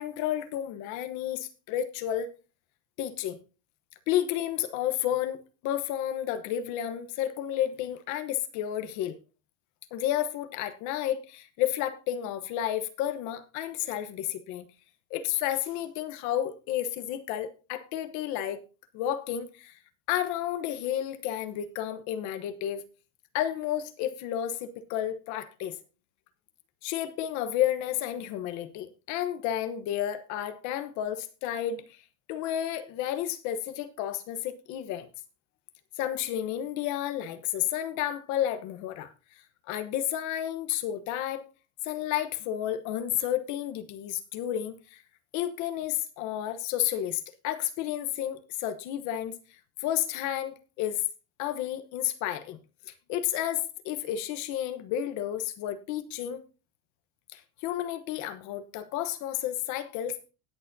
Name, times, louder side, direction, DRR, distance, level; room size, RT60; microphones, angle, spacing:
voice 1, 0.0-2.3 3.0-3.4 4.1-9.2 9.9-14.7 15.1-18.6 18.9-19.7 20.1-22.8 23.3-25.8 26.8-32.0 32.3-35.1 36.0-39.1 39.7-41.4 41.8-45.0 45.3-49.4 49.8-51.0 51.4-52.6 52.9-56.4 57.3-60.3, left 11 dB, 40° left, 1.1 m, -31 dB
19.0 x 6.8 x 2.7 m
cardioid pair, 175°, 43 cm